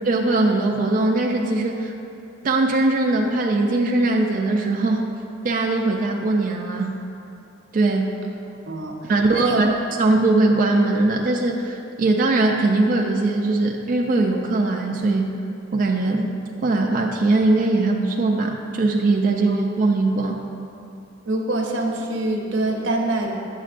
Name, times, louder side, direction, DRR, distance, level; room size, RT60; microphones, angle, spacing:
voice 1, 0.1-1.9 2.4-5.1 5.4-7.0 7.7-8.1 9.1-15.3 15.7-16.3 16.6-20.4, right 2 dB, 45° right, 1 dB, 0.4 m, -20 dB
voice 2, 8.7-9.6 19.5-19.6 21.3-23.3, right 2 dB, 90° right, 1 dB, 0.9 m, -25 dB
8.9 x 7.2 x 2.5 m, 2.8 s
head